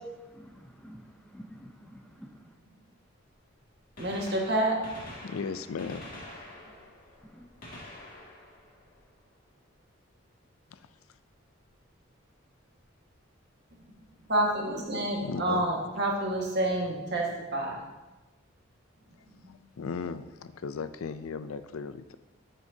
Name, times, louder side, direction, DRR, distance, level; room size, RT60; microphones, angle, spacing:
voice 1, 0.0-2.5 7.2-7.5, equal, 5° left, 2 dB, 0.4 m, -49 dB
Gunshot gunfire, 3.9-9.7 11.6-11.8 12.8-12.9 14.5-14.6 16.0-16.1 16.2-16.3, left 1 dB, 40° left, 2.2 m, -47 dB
voice 2, 4.0-4.8 6.6-6.7 14.2-17.8 19.4-19.6, right 1 dB, 55° right, -1 dB, 1.6 m, -29 dB
voice 3, 5.2-6.1 10.7-10.9 15.2-15.6 19.8-22.1, left 5 dB, 85° left, 12 dB, 0.4 m, -36 dB
12.5 x 6.3 x 2.8 m, 1.1 s
head